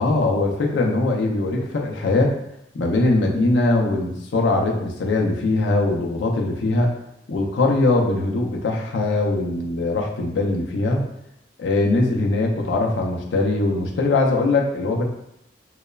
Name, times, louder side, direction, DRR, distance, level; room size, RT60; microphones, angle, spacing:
voice 1, 0.0-2.3 2.7-6.9 7.3-11.0 11.6-15.0, left 2 dB, 85° left, 0 dB, 0.4 m, -21 dB
3.0 x 2.0 x 2.2 m, 0.79 s
head